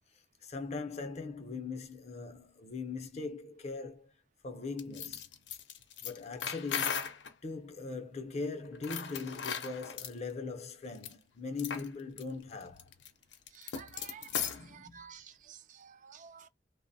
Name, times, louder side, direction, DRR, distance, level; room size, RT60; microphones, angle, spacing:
voice 1, 0.4-4.1 4.4-5.4 6.0-7.1 7.4-12.9 14.4-15.1, left 4 dB, 40° left, 0.5 m, -40 dB
sound 1, 4.8-7.3 8.7-10.1 10.9-11.1 11.6-11.9 12.2-12.3 12.6-14.7, left 7 dB, 85° left, 0.5 m, -37 dB
voice 2, 13.5-16.5, right 7 dB, 45° right, 0.4 m, -52 dB
3.0 x 2.0 x 2.6 m
head